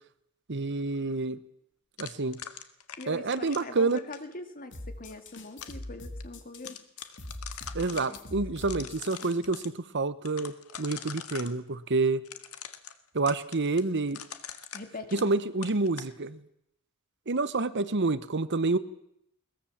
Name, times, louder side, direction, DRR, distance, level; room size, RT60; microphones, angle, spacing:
voice 1, 0.5-1.4 2.0-2.4 3.1-4.0 7.7-12.2 13.1-14.2 15.1-16.4 17.3-18.8, right 3 dB, 55° right, 15 dB, 1.1 m, -28 dB
sound 1, 2.0-4.3 5.1-5.8 6.2-6.3 6.5-8.2 8.6-9.7 10.3-11.5 12.2-15.4 15.6-16.1, left 9 dB, 75° left, 1.8 m, -43 dB
voice 2, 3.0-6.8 8.1-8.6 14.7-15.3, left 2 dB, 40° left, 7 dB, 2.5 m, -43 dB
sound 2, 4.7-9.6, left 1 dB, 55° left, 2.8 m, -42 dB
22.0 x 20.5 x 7.4 m, 0.76 s
head